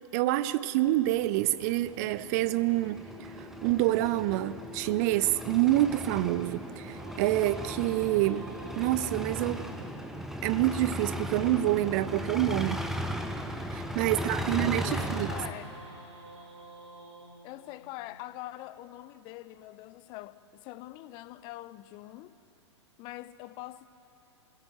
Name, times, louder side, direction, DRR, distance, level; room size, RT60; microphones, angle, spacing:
voice 1, 0.1-9.6 10.4-12.8 13.7-15.3, right 15 dB, 35° right, 0.6 m, -27 dB
sound 1, 1.0-15.5, equal, ahead, 1.1 m, -37 dB
sound 2, 6.4-10.6 12.7-18.9, right 2 dB, 65° right, 3.2 m, -51 dB
voice 2, 14.1-15.8 17.4-22.4 23.0-23.9, left 16 dB, 30° left, 0.6 m, -44 dB
28.5 x 17.0 x 7.6 m
figure-of-eight pair, 105°, 15 cm